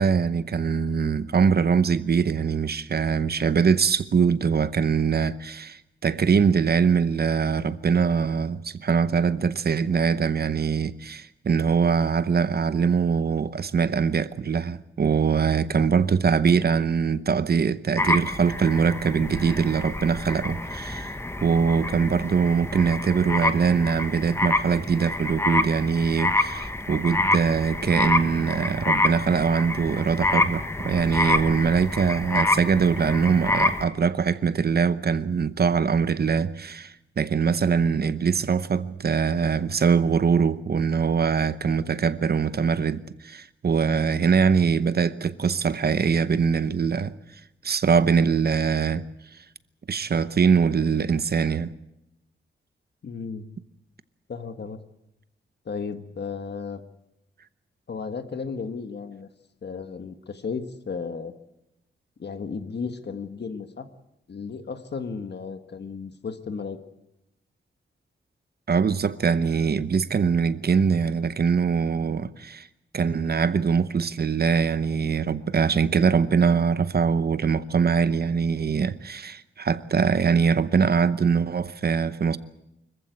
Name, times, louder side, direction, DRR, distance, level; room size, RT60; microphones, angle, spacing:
voice 1, 0.0-21.1 21.4-47.1 47.6-49.1 49.9-51.7 68.7-72.7 72.9-82.4, right 6 dB, 50° right, 0.8 m, -23 dB
sound 1, 18.0-33.8, left 2 dB, 10° left, 1.2 m, -27 dB
voice 2, 53.0-53.5 54.3-54.8 55.6-56.8 57.9-59.3 59.6-61.3 62.2-63.8 64.3-66.8, left 5 dB, 55° left, 1.6 m, -34 dB
25.0 x 15.0 x 9.4 m
wide cardioid pair, 170°, 20 cm